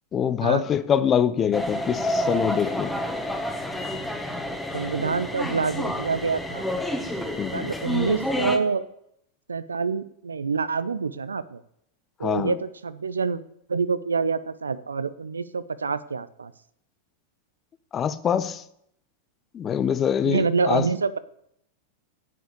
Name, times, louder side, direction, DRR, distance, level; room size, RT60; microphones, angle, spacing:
voice 1, 0.1-2.9 7.4-7.7 12.2-12.6 17.9-18.6 19.5-20.9, left 8 dB, 25° left, 0.7 m, -24 dB
sound 1, 1.5-8.6, left 1 dB, 5° left, 1.6 m, -29 dB
voice 2, 4.7-6.7 7.5-8.9 9.5-11.6 12.2-13.4 13.7-16.5 20.2-21.2, right 5 dB, 75° right, 0.6 m, -26 dB
9.4 x 8.1 x 8.4 m
figure-of-eight pair, 90°, 0 cm